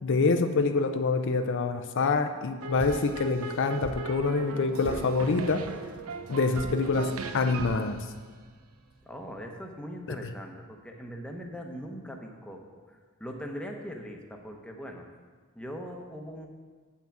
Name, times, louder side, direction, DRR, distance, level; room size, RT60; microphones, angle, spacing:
voice 1, 0.0-5.6 6.3-8.1, left 4 dB, 60° left, 7 dB, 0.5 m, -26 dB
sound 1, 2.6-8.9, right 3 dB, 80° right, 0.6 m, -38 dB
voice 2, 9.0-15.0 15.5-16.5, equal, 5° left, 2 dB, 0.8 m, -41 dB
7.5 x 5.8 x 7.3 m, 1.5 s
head